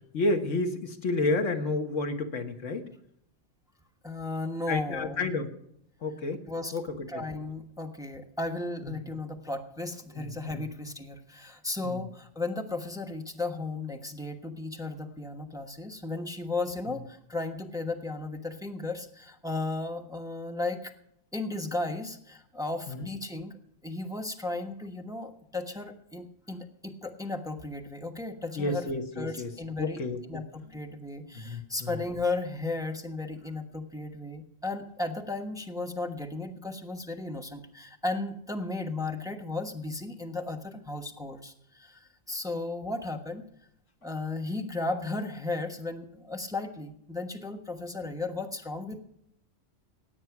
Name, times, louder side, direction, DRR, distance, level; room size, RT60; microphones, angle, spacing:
voice 1, 0.1-2.9 4.7-5.5 6.0-6.4 6.7-7.2 8.8-9.0 10.1-10.6 11.8-12.0 22.9-23.1 28.6-29.5 29.8-30.4 31.3-31.9, left 2 dB, 85° left, 6 dB, 1.7 m, -31 dB
voice 2, 4.0-5.3 6.5-6.8 7.1-20.9 21.3-23.6 23.8-28.9 29.2-30.0 30.3-43.5 44.0-49.0, left 2 dB, 5° right, 5 dB, 1.1 m, -35 dB
17.0 x 9.0 x 5.9 m, 0.73 s
omnidirectional pair, 1.3 m